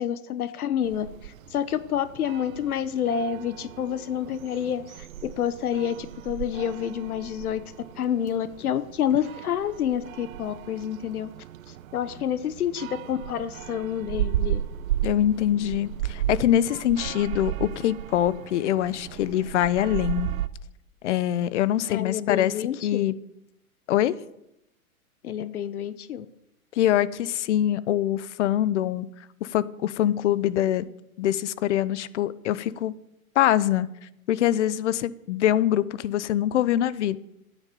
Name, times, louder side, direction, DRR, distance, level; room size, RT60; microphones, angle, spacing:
voice 1, 0.0-7.6 8.0-11.3 11.7-14.6 21.9-23.1 25.2-26.3, left 9 dB, 85° left, 13 dB, 1.0 m, -28 dB
sound 1, 0.8-20.5, right 12 dB, 70° right, 0.8 m, -35 dB
voice 2, 15.0-20.3 21.0-22.5 22.8-23.1 23.9-24.2 26.8-29.1 29.4-30.8 31.2-32.9 33.4-33.9 34.3-37.2, left 12 dB, 55° left, 17 dB, 0.8 m, -24 dB
11.5 x 9.6 x 6.9 m, 0.83 s
hypercardioid pair, 145°, 43 cm